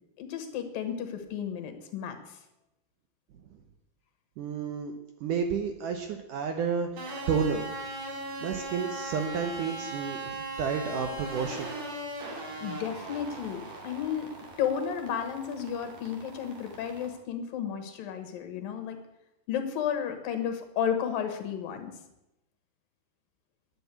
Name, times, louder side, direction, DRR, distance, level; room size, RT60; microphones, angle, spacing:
voice 1, 0.2-2.4 12.6-14.3 14.6-19.0 19.5-21.9, left 8 dB, 70° left, 7 dB, 3.0 m, -33 dB
voice 2, 4.4-4.9 5.2-7.7 8.4-11.7, right 6 dB, 70° right, 5 dB, 2.1 m, -31 dB
sound 1, 7.0-17.1, right 2 dB, 50° right, 3.3 m, -39 dB
11.5 x 8.3 x 8.3 m, 0.89 s
omnidirectional pair, 4.5 m